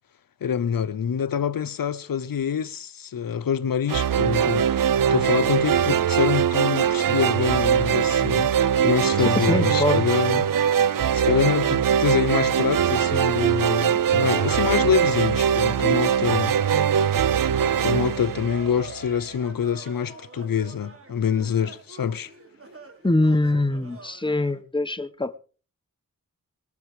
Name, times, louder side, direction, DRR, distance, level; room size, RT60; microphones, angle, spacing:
voice 1, 0.4-16.6 17.8-22.3, left 7 dB, 80° left, 0.9 m, -26 dB
sound 1, 3.9-19.1, right 8 dB, 70° right, 0.7 m, -22 dB
voice 2, 9.2-10.0 23.0-25.4, left 2 dB, 15° left, 1.3 m, -23 dB
sound 2, 17.5-24.6, right 2 dB, 40° right, 4.5 m, -45 dB
21.5 x 8.5 x 4.9 m
cardioid pair, 45°, 34 cm